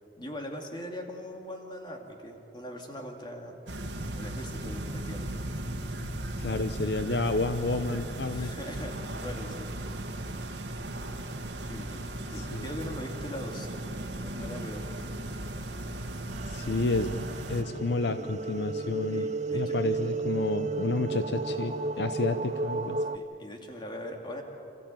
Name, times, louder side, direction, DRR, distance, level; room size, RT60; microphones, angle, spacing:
voice 1, 0.2-3.5 4.1-5.3 8.2-9.7 10.0-10.3 11.7-13.7 14.0-14.9 19.1-20.0 23.1-24.4, left 1 dB, 25° left, 2 dB, 2.5 m, -41 dB
sound 1, 3.7-17.6, right 1 dB, 80° right, 1.7 m, -37 dB
voice 2, 6.4-8.5 12.4-12.6 16.5-19.3 19.5-23.0, left 2 dB, 70° left, 9 dB, 0.7 m, -30 dB
sound 2, 16.3-23.2, right 3 dB, 40° right, 0.6 m, -33 dB
27.0 x 14.5 x 9.0 m, 2.9 s
head